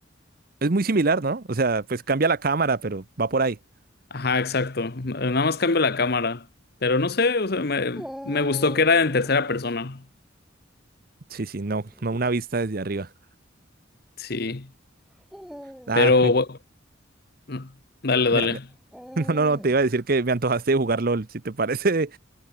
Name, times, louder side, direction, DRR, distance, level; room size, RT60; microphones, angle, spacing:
voice 1, 0.6-3.6 11.3-13.1 15.9-16.3 18.3-18.5 19.2-22.2, right 3 dB, 50° right, 0.8 m, -24 dB
voice 2, 4.1-6.4 6.8-10.0 14.2-14.7 15.9-16.6 17.5-17.7 18.0-18.6, left 3 dB, 50° left, 1.1 m, -23 dB
Dog, 7.9-9.6 11.7-12.2 13.0-13.1 15.2-16.4 18.9-19.9, equal, ahead, 6.1 m, -42 dB
head